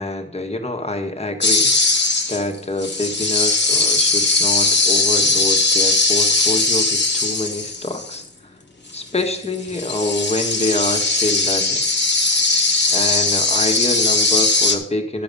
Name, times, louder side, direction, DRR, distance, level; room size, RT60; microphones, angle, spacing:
voice 1, 0.0-1.7 2.3-8.2 8.9-11.8 12.9-15.2, left 2 dB, 30° left, 4 dB, 1.4 m, -26 dB
sound 1, 1.4-8.2 9.2-9.3 9.5-14.8, left 3 dB, 55° left, 1.3 m, -19 dB
12.0 x 5.0 x 5.3 m, 0.72 s
cardioid pair, 40°, 21 cm